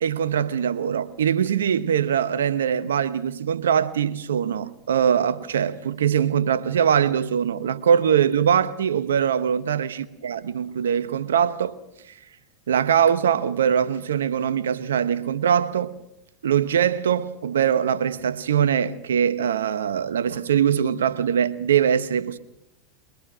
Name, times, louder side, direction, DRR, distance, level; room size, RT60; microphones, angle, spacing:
voice 1, 0.0-11.8 12.0-12.2 12.7-16.0 16.4-22.4, right 8 dB, 85° right, 1.0 m, -22 dB
24.0 x 20.5 x 6.2 m
hypercardioid pair, 100°, 0 cm